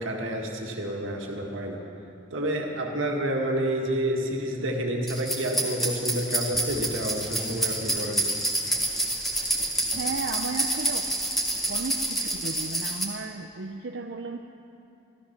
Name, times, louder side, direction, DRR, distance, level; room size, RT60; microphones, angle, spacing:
voice 1, 0.0-1.8 2.3-8.2, right 1 dB, 85° right, 1 dB, 1.8 m, -29 dB
sound 1, 5.1-13.0, right 1 dB, ahead, 1.7 m, -28 dB
voice 2, 10.0-11.1 11.7-14.4, right 4 dB, 60° right, 4 dB, 0.5 m, -34 dB
14.0 x 13.0 x 5.9 m, 2.7 s
head